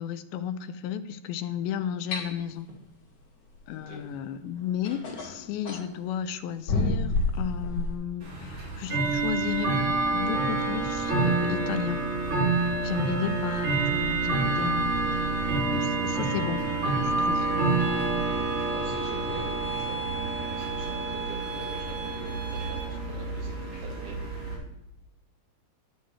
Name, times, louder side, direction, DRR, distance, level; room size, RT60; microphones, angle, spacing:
voice 1, 0.0-2.7 3.7-9.9 10.1-12.0 12.8-15.3 15.7-16.6 17.0-17.5, left 9 dB, 85° left, 10 dB, 2.5 m, -33 dB
sound 1, 2.1-2.3 4.1-4.2 4.8-5.9 6.7-8.0, left 2 dB, 55° left, 3.9 m, -28 dB
Bell / Tick-tock, 8.2-24.6, right 3 dB, 45° right, 3.6 m, -28 dB
sound 2, 17.8-22.8, right 5 dB, 20° right, 4.4 m, -36 dB
voice 2, 18.3-20.1 20.4-24.2, right 2 dB, 75° right, -2 dB, 3.9 m, -45 dB
11.5 x 10.0 x 3.2 m, 0.92 s
omnidirectional pair, 4.3 m